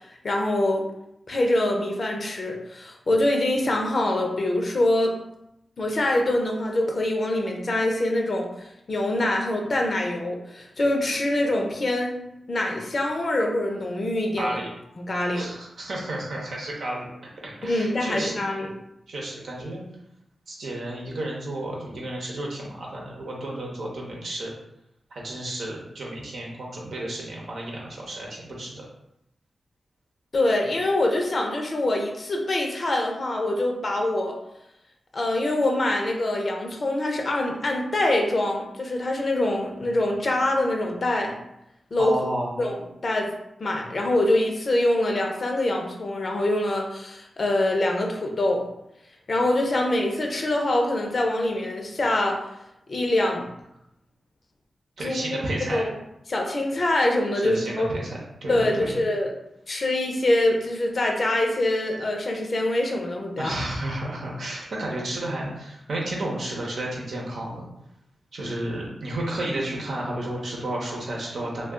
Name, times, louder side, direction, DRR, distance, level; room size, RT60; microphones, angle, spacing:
voice 1, 0.2-0.8 1.3-5.2 5.8-8.5 8.9-12.1 12.5-14.6 15.0-15.5 17.6-18.7 30.3-34.4 35.1-41.3 41.9-42.2 42.6-42.8 43.0-43.3 43.6-48.7 49.3-52.4 52.9-53.5 55.0-55.4 55.7-55.9 56.3-57.9 58.5-59.3 59.7-63.5, left 1 dB, 55° left, 1 dB, 0.6 m, -24 dB
voice 2, 14.4-14.7 15.3-17.1 17.4-18.4 19.1-19.8 20.5-24.5 25.1-28.8 42.0-42.5 55.0-55.9 57.4-59.0 63.4-67.7 68.3-71.7, right 1 dB, 75° right, -3 dB, 0.8 m, -32 dB
2.3 x 2.3 x 3.6 m, 0.83 s
supercardioid pair, 40°, 0 cm